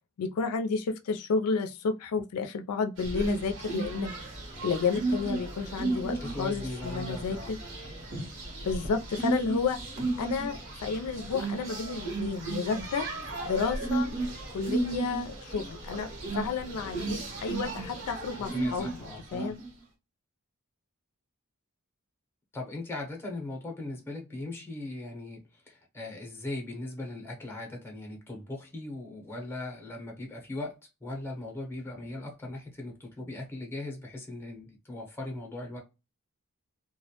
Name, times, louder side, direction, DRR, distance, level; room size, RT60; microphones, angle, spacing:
voice 1, 0.2-4.1 4.6-7.6 8.6-9.8 10.2-13.1 13.4-14.1 14.5-16.1 16.3-19.0 19.3-19.6, left 5 dB, 90° left, 0.4 m, -31 dB
sound 1, 3.0-19.7, right 3 dB, 55° right, 1.0 m, -34 dB
voice 2, 6.2-7.5 18.4-19.5 22.5-35.8, left 2 dB, 10° left, 0.7 m, -39 dB
2.2 x 2.0 x 2.7 m
head